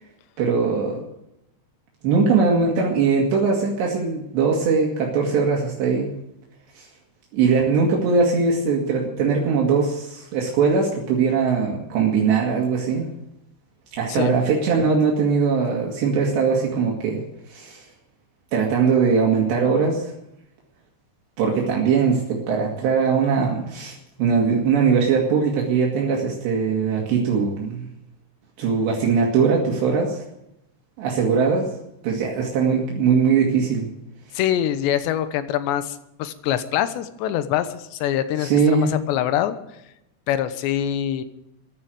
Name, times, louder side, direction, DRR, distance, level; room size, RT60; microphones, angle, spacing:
voice 1, 0.4-1.0 2.0-6.1 6.8-6.9 7.3-13.1 13.9-17.9 18.5-20.1 21.4-27.9 28.6-30.2 31.0-31.7 32.0-33.9 38.4-39.0, right 5 dB, 70° right, -1 dB, 4.0 m, -21 dB
voice 2, 34.3-39.6 40.3-41.2, left 11 dB, 80° left, 11 dB, 3.1 m, -24 dB
15.0 x 11.5 x 7.7 m, 0.85 s
omnidirectional pair, 5.3 m